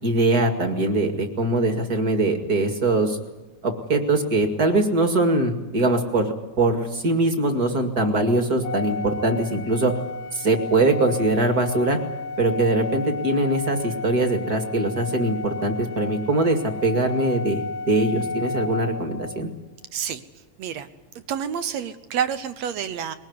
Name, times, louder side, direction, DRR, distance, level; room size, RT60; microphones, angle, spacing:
voice 1, 0.0-3.2 3.6-9.9 10.3-12.0 12.4-19.5, right 2 dB, 35° right, 5 dB, 2.2 m, -22 dB
Organ, 8.6-19.5, left 3 dB, 70° left, 2.1 m, -33 dB
voice 2, 19.9-20.2 20.6-20.9 21.2-23.1, right 8 dB, 70° right, 10 dB, 2.0 m, -28 dB
21.5 x 18.5 x 9.6 m, 1.1 s
omnidirectional pair, 3.4 m